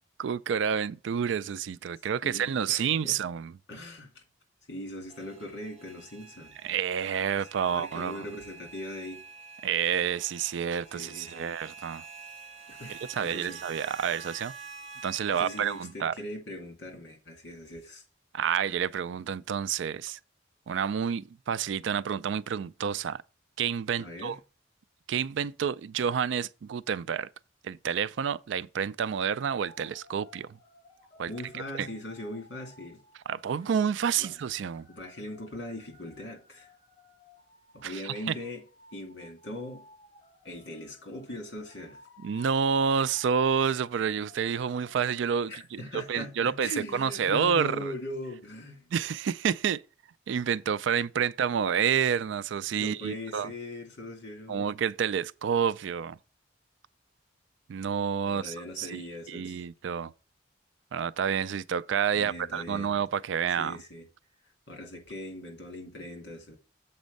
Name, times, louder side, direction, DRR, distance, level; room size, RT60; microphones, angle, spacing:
voice 1, 0.2-3.5 6.6-8.3 9.6-12.1 12.9-14.5 15.0-16.1 18.3-20.2 20.7-23.2 23.6-24.4 25.1-27.3 27.6-30.6 31.2-31.9 33.3-34.9 37.8-38.3 42.2-45.8 46.1-47.9 48.9-49.8 50.3-53.5 54.5-56.2 57.7-59.0 59.3-60.1 60.9-63.8, right 7 dB, 75° right, 0.3 m, -29 dB
voice 2, 2.2-3.2 3.7-4.2 4.7-6.6 7.7-9.2 10.9-11.5 12.7-13.6 15.3-18.0 24.0-24.4 31.3-33.0 34.2-34.3 34.9-36.7 37.7-38.6 38.9-39.9 40.4-42.0 45.5-48.9 52.8-54.7 58.3-59.7 62.1-62.9 63.5-64.1 64.7-66.6, left 1 dB, 60° left, 2.2 m, -40 dB
sound 1, 5.1-15.9, right 5 dB, 30° right, 1.4 m, -47 dB
sound 2, 29.2-44.9, left 2 dB, 25° left, 1.3 m, -57 dB
7.1 x 4.3 x 5.2 m
head